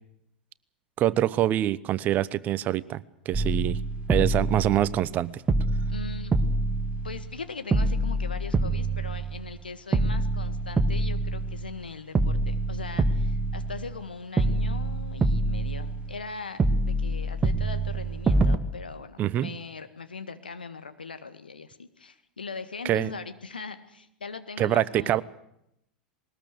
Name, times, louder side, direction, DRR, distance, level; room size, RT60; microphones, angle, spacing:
voice 1, 1.0-3.8 4.1-5.4 19.2-19.5 22.8-23.1 24.6-25.2, right 13 dB, 35° right, 20 dB, 0.8 m, -25 dB
sound 1, 3.3-5.2 5.5-7.4 7.7-9.6 9.9-11.9 12.2-14.1 14.4-16.3 16.6-18.6, right 2 dB, 20° right, 1.5 m, -26 dB
voice 2, 5.9-6.3 7.0-25.2, left 4 dB, 80° left, 10 dB, 1.7 m, -40 dB
20.5 x 19.5 x 7.9 m, 0.78 s
figure-of-eight pair, 85°, 5 cm